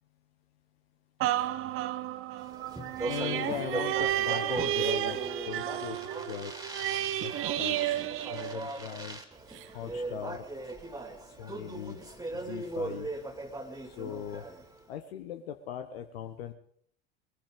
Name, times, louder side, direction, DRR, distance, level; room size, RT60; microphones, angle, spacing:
sound 1, 1.2-9.0 9.6-9.7, right 13 dB, 40° right, 0.8 m, -32 dB
Speech, 2.4-14.8, right 2 dB, 10° right, 2.4 m, -39 dB
voice 1, 3.0-6.5 7.2-8.0 8.3-9.2 9.6-10.5 11.4-12.0 12.3-13.1 13.8-14.5 14.9-16.5, left 9 dB, 60° left, 7 dB, 1.2 m, -39 dB
21.5 x 16.0 x 3.8 m, 0.64 s
figure-of-eight pair, 70°, 33 cm